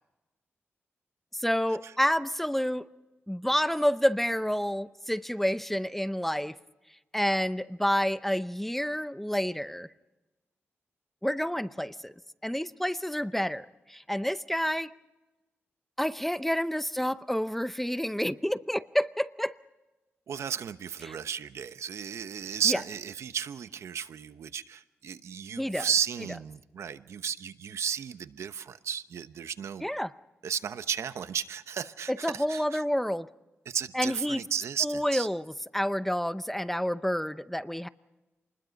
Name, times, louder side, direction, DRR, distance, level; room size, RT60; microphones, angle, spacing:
voice 1, 1.3-2.9 3.3-6.6 7.1-9.9 11.2-12.1 12.4-14.9 16.0-19.5 21.0-21.2 22.7-22.8 25.6-25.9 29.8-30.1 32.1-33.3 33.9-34.4 34.8-37.9, equal, 5° left, 13 dB, 0.7 m, -29 dB
voice 2, 20.3-29.9 30.4-32.8 33.7-35.3, right 8 dB, 80° right, 12 dB, 0.9 m, -34 dB
28.0 x 20.5 x 5.3 m, 1.1 s
cardioid pair, 95°, 5 cm